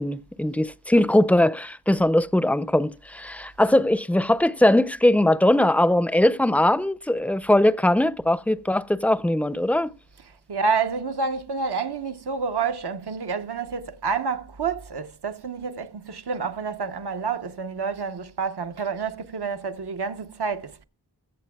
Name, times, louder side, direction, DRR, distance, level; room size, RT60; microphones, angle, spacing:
voice 1, 0.0-9.9, left 1 dB, 5° left, 0.4 m, -20 dB
voice 2, 10.5-20.8, right 5 dB, 75° right, 0.8 m, -28 dB
22.0 x 7.6 x 2.2 m
wide cardioid pair, 55°, 39 cm